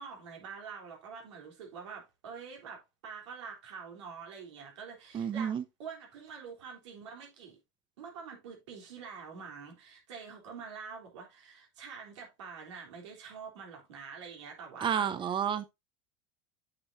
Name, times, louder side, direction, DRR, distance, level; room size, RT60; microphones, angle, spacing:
voice 1, 0.0-7.6 8.0-15.1, right 6 dB, 80° right, 3.6 m, -46 dB
voice 2, 5.1-5.6 14.8-15.7, right 8 dB, 35° right, 1.0 m, -30 dB
8.6 x 6.5 x 2.6 m
hypercardioid pair, 100°, 15 cm